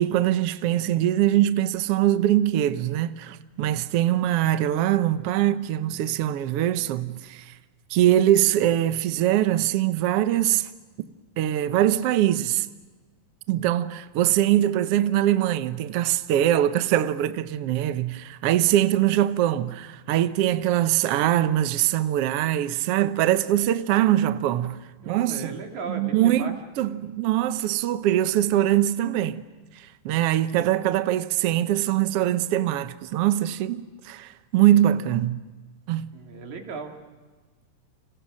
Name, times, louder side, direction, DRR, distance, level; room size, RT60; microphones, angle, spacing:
voice 1, 0.0-7.6 7.9-10.7 11.4-12.7 13.5-24.8 25.1-25.5 25.9-29.4 29.8-35.4 35.9-36.1, right 12 dB, 85° right, 1.3 m, -22 dB
voice 2, 25.0-26.5 36.1-36.9, right 4 dB, 55° right, 4.0 m, -36 dB
30.0 x 28.0 x 6.4 m
omnidirectional pair, 4.1 m